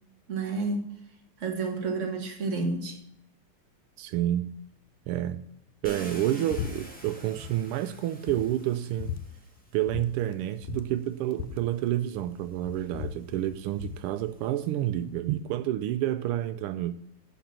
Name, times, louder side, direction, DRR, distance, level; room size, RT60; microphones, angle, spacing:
voice 1, 0.3-0.9 1.4-3.0, right 3 dB, 35° right, 1.8 m, -30 dB
voice 2, 4.0-4.6 5.1-5.5 5.8-9.2 9.7-17.0, right 13 dB, 85° right, 1.5 m, -29 dB
Car, 5.8-9.9 10.9-11.0 11.5-14.8, equal, 5° left, 1.4 m, -48 dB
sound 1, 6.5-6.7 7.0-7.5 7.9-8.0 8.3-9.2 9.9-10.1 10.3-10.4 10.6-12.3 12.6-14.0, left 10 dB, 90° left, 1.5 m, -37 dB
11.0 x 4.2 x 7.3 m
omnidirectional pair, 2.4 m